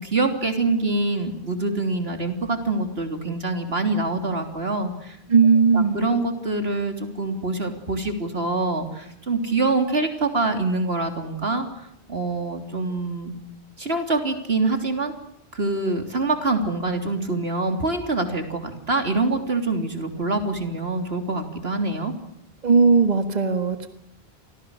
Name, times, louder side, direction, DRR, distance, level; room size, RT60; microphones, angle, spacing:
voice 1, 0.0-5.2 5.7-11.7 12.1-13.3 13.8-15.1 15.5-22.1, right 3 dB, 80° right, 5 dB, 3.6 m, -25 dB
voice 2, 5.3-6.0 22.6-23.9, right 5 dB, 45° right, 7 dB, 1.8 m, -17 dB
30.0 x 25.0 x 6.5 m, 0.78 s
omnidirectional pair, 1.0 m